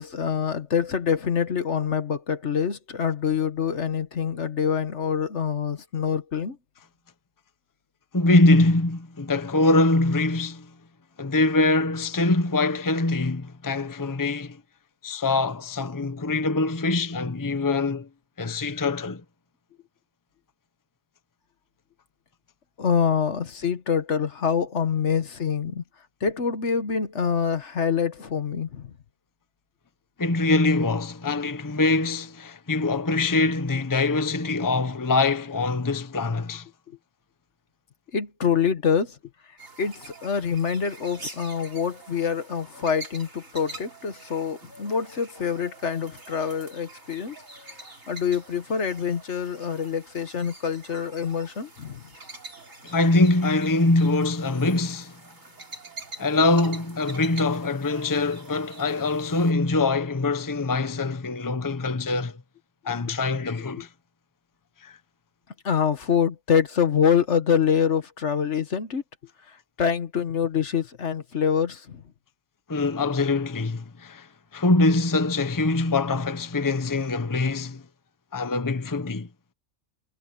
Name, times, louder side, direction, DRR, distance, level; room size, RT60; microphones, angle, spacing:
voice 1, 0.0-6.6 22.8-25.8 26.2-28.9 38.1-39.2 39.8-47.4 48.1-52.0 63.8-63.9 65.6-69.0 69.5-72.0, left 7 dB, 60° left, 1.5 m, -25 dB
voice 2, 8.1-10.7 11.2-14.6 15.0-18.1 18.4-19.2 30.2-36.7 52.8-55.2 56.2-62.4 62.8-63.9 64.8-65.0 72.7-74.3 74.5-77.8 78.3-79.3, left 2 dB, 15° left, 0.9 m, -23 dB
sound 1, 39.6-59.5, right 2 dB, 75° right, 4.8 m, -45 dB
omnidirectional pair, 1.4 m